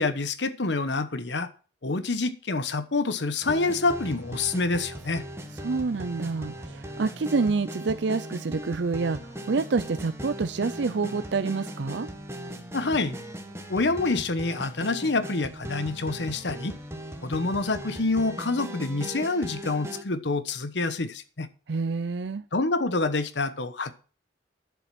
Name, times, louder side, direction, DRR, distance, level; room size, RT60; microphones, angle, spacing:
voice 1, 0.0-1.5 1.8-5.2 12.7-13.2 13.7-16.7 17.2-21.5 22.5-24.0, left 3 dB, 65° left, 12 dB, 1.0 m, -27 dB
sound 1, 3.4-20.0, equal, 15° right, 1.6 m, -39 dB
voice 2, 5.6-12.1 21.7-22.4, right 4 dB, 65° right, 12 dB, 0.5 m, -27 dB
10.5 x 7.5 x 6.0 m, 0.37 s
head